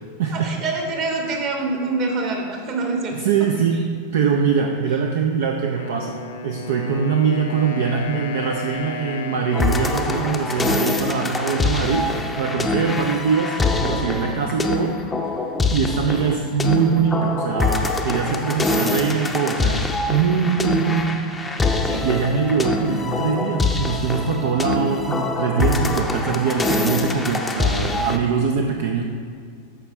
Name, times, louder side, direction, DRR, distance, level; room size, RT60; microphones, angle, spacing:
voice 1, 0.3-3.2 21.8-22.1, right 3 dB, 40° right, 2 dB, 1.4 m, -26 dB
voice 2, 3.1-3.8 4.1-12.1 12.4-15.0 15.7-21.2 22.0-29.0, right 6 dB, 55° right, 3 dB, 0.5 m, -22 dB
Wind instrument woodwind instrument, 5.8-11.7, left 3 dB, 60° left, 0.8 m, -34 dB
sound 1, 9.5-28.2, left 3 dB, 10° left, 0.6 m, -24 dB
13.0 x 5.0 x 3.3 m, 2.1 s
figure-of-eight pair, 90°, 0 cm